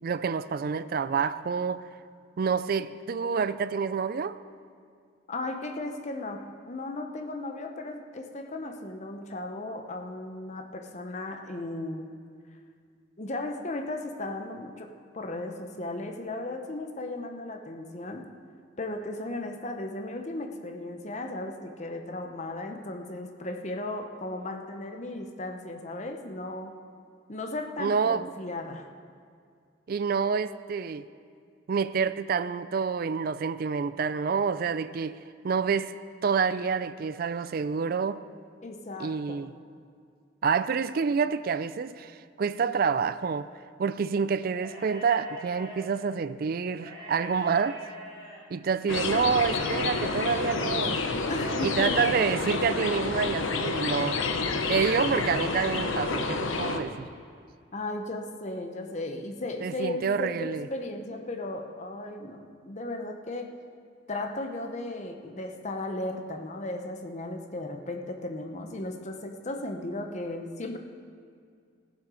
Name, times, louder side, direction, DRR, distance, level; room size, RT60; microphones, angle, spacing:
voice 1, 0.0-1.9 2.4-4.4 27.8-28.2 29.9-31.1 31.7-35.2 35.4-35.9 36.2-38.2 39.0-39.5 40.4-43.5 43.8-47.8 48.5-51.1 51.6-54.2 54.7-57.1 59.6-60.7, right 6 dB, 50° right, 0.3 m, -28 dB
voice 2, 5.3-12.2 13.2-18.3 18.8-26.7 27.3-28.9 38.6-39.5 51.3-52.1 57.7-63.5 64.1-70.8, left 2 dB, 35° left, 0.8 m, -36 dB
sound 1, 44.5-45.8 46.7-48.4 49.3-50.5 51.3-52.2, equal, 25° right, 3.3 m, -44 dB
sound 2, 48.9-56.8, left 3 dB, 90° left, 0.8 m, -29 dB
16.5 x 7.7 x 4.9 m
head